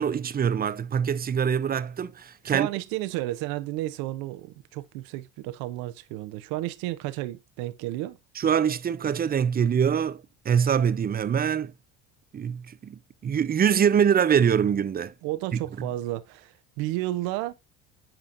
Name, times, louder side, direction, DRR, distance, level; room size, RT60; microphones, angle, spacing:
voice 1, 0.0-2.7 8.4-11.7 12.3-15.1 15.5-15.9, right 8 dB, 25° right, 0.5 m, -24 dB
voice 2, 2.5-8.2 15.2-17.5, right 16 dB, 80° right, 0.8 m, -32 dB
8.9 x 5.0 x 2.6 m
supercardioid pair, 80°, 35 cm